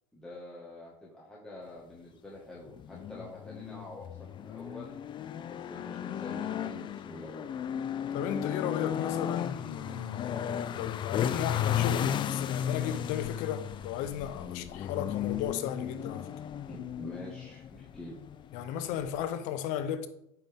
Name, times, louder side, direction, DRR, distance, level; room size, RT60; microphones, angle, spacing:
voice 1, 0.1-5.0 5.5-7.5 14.5-14.7 16.7-18.1, left 1 dB, 5° left, 2.0 m, -46 dB
sound 1, 2.7-19.3, left 10 dB, 35° left, 0.5 m, -35 dB
voice 2, 8.1-16.3 18.5-20.1, left 9 dB, 65° left, 0.9 m, -35 dB
8.9 x 5.9 x 3.7 m
supercardioid pair, 100°, 14 cm